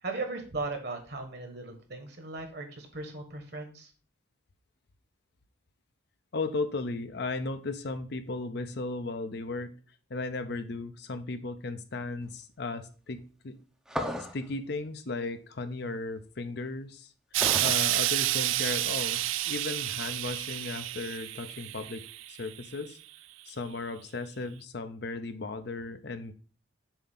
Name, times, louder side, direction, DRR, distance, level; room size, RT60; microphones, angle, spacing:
voice 1, 0.0-3.9, right 3 dB, 50° right, 5 dB, 1.4 m, -37 dB
voice 2, 6.3-9.7 10.1-13.6 14.3-17.1 17.6-23.0 23.5-26.3, left 3 dB, 55° left, 9 dB, 0.6 m, -36 dB
sound 1, 13.9-14.4 17.4-17.8, equal, 5° right, 0.6 m, -33 dB
Explosion, 17.3-22.6 23.5-23.6, right 15 dB, 75° right, 0.3 m, -30 dB
7.1 x 2.8 x 5.5 m, 0.38 s
head